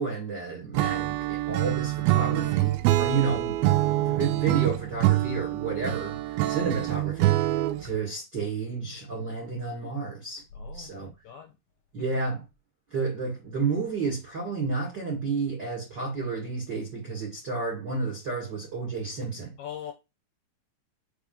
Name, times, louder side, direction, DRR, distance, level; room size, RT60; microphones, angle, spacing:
voice 1, 0.0-10.4 10.7-11.1 11.9-12.4 12.9-19.5, right 4 dB, 50° right, 1.2 m, -31 dB
Acoustic guitar / Strum, 0.7-7.9, right 16 dB, 90° right, 2.2 m, -25 dB
voice 2, 10.5-11.5 19.6-19.9, left 6 dB, 75° left, 2.3 m, -40 dB
6.5 x 3.6 x 5.1 m
omnidirectional pair, 5.1 m